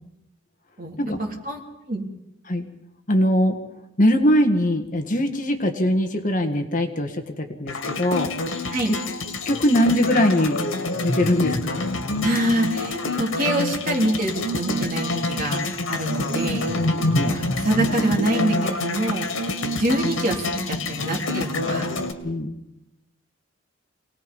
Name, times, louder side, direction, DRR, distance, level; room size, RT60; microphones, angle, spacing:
voice 1, 0.8-1.6 1.9-2.0 8.6-9.0 12.2-15.6 15.9-22.0, right 1 dB, 45° right, 0 dB, 3.4 m, -26 dB
voice 2, 3.1-3.6 4.0-8.3 8.9-9.0 9.5-10.6 11.0-11.8 16.9-17.3 22.2-22.5, left 1 dB, 40° left, 5 dB, 1.8 m, -21 dB
sound 1, 7.7-22.1, left 2 dB, 90° left, 2.1 m, -26 dB
26.5 x 19.0 x 5.5 m, 0.91 s
head